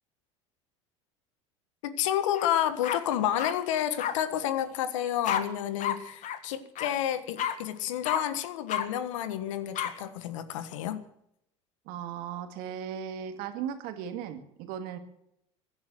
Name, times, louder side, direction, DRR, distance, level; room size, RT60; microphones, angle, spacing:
voice 1, 1.8-11.0, left 11 dB, 80° left, 13 dB, 1.4 m, -30 dB
sound 1, 2.3-2.5 2.8-3.5 4.0-4.1 5.2-5.4 5.8-6.0 6.2-6.4 6.7-6.9 7.4-7.5 8.0-8.2 8.7-8.8 9.7-9.9, left 9 dB, 50° left, 1.8 m, -30 dB
voice 2, 11.9-15.0, right 8 dB, 70° right, 8 dB, 2.2 m, -37 dB
16.0 x 10.5 x 7.8 m, 0.76 s
hypercardioid pair, 80°, 16 cm